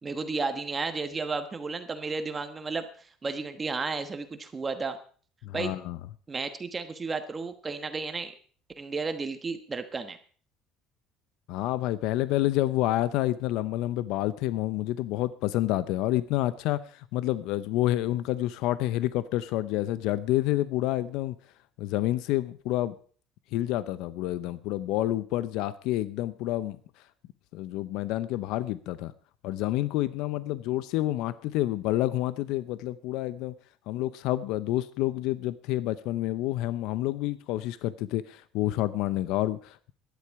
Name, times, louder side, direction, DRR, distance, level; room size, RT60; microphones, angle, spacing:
voice 1, 0.0-5.0 5.5-5.7 6.3-8.3 8.8-10.2, right 4 dB, 20° right, 8 dB, 1.2 m, -33 dB
voice 2, 5.4-6.0 11.5-21.4 21.8-22.9 23.5-26.8 27.5-29.1 29.4-33.5 33.9-39.9, left 15 dB, 75° left, 15 dB, 0.7 m, -28 dB
15.5 x 11.5 x 4.7 m, 0.43 s
cardioid pair, 155°, 0 cm